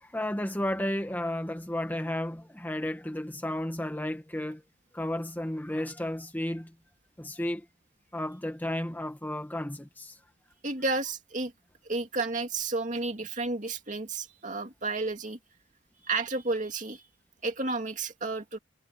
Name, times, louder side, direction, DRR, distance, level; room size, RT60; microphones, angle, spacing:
voice 1, 0.0-4.6 4.9-6.7 7.2-7.6 8.1-10.2, left 1 dB, 10° left, 1.4 m, -33 dB
voice 2, 10.6-11.5 11.9-15.4 16.0-17.0 17.4-18.6, right 3 dB, 40° right, 2.5 m, -31 dB
head